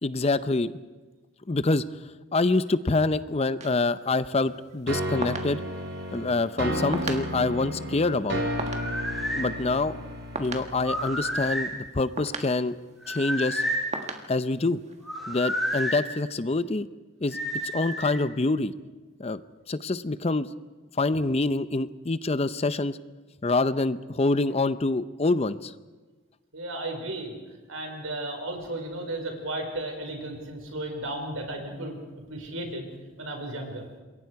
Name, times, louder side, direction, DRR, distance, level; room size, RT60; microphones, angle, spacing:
voice 1, 0.0-0.7 1.5-1.8 2.3-5.6 6.1-8.4 9.3-10.0 10.4-12.7 13.1-13.6 14.3-14.8 15.3-16.9 17.2-17.4 17.6-18.7 19.2-19.4 19.7-20.5 21.0-23.0 23.4-25.7, left 3 dB, 30° left, 14 dB, 0.6 m, -26 dB
sound 1, 3.6-15.5, right 3 dB, 35° right, 1.6 m, -41 dB
sound 2, 4.9-11.7, equal, 55° right, 3.4 m, -33 dB
sound 3, 8.6-9.5 10.8-11.7 13.0-13.9 15.0-16.0 17.3-18.2, equal, ahead, 4.4 m, -30 dB
voice 2, 26.5-27.3 27.7-32.0 32.3-32.9 33.2-33.9, right 1 dB, 85° right, 3 dB, 4.8 m, -34 dB
27.0 x 22.5 x 4.7 m, 1.3 s
head